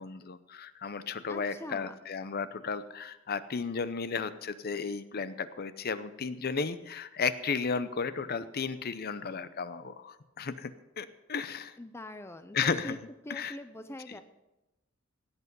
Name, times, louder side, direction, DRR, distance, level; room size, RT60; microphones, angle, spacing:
voice 1, 0.0-11.8 12.5-13.0 13.3-13.6 14.1-14.2, left 5 dB, 50° left, 13 dB, 0.7 m, -34 dB
voice 2, 1.3-1.9 11.8-13.0 13.2-14.2, left 1 dB, 10° left, 9 dB, 0.5 m, -43 dB
17.0 x 8.1 x 5.4 m, 0.97 s
head